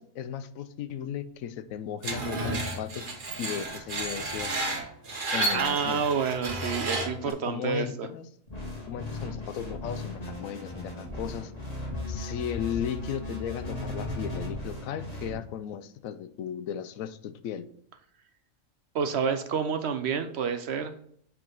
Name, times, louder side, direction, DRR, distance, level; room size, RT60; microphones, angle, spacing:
voice 1, 0.0-3.1 3.4-4.6 5.3-6.0 7.2-8.3 8.9-11.5 12.1-17.7, left 9 dB, 85° left, 12 dB, 1.0 m, -36 dB
Screech, 2.0-7.3, right 2 dB, 40° right, 1.2 m, -31 dB
voice 2, 5.5-8.1 18.9-20.9, right 6 dB, 60° right, 9 dB, 0.8 m, -29 dB
sound 1, 8.5-15.3, left 1 dB, 30° left, 2.1 m, -36 dB
7.7 x 3.8 x 3.8 m, 0.63 s
omnidirectional pair, 1.4 m